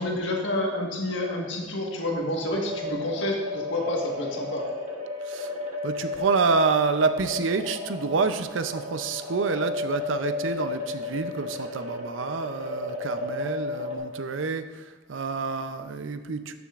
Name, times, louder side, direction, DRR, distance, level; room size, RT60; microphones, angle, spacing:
voice 1, 0.0-4.7, left 1 dB, 75° left, 0 dB, 1.5 m, -29 dB
sound 1, 2.5-14.0, left 2 dB, 40° right, 1.5 m, -33 dB
voice 2, 5.8-16.5, right 4 dB, 85° right, 10 dB, 0.5 m, -28 dB
12.5 x 7.1 x 2.5 m, 1.4 s
head